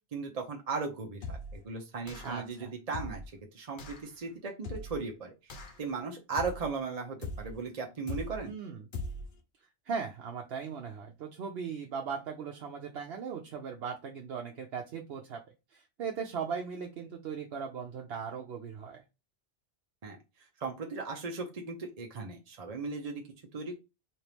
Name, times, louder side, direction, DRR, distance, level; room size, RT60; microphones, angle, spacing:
voice 1, 0.1-2.6 2.9-3.2 3.5-5.3 5.8-8.5 20.0-20.2 20.6-23.2 23.5-23.7, right 4 dB, 40° right, 2 dB, 0.7 m, -37 dB
sound 1, 1.2-1.6 2.1-2.5 2.9-3.3 3.8-4.1 4.6-5.1 5.5-5.9 6.4-6.8 7.2-7.6 8.1-8.5 8.9-9.4, left 2 dB, 55° left, 0.8 m, -40 dB
voice 2, 2.2-2.7 8.4-8.9 9.9-15.4 15.7-19.0, right 6 dB, 75° right, 2 dB, 0.9 m, -38 dB
4.3 x 2.5 x 3.3 m, 0.27 s
omnidirectional pair, 1.1 m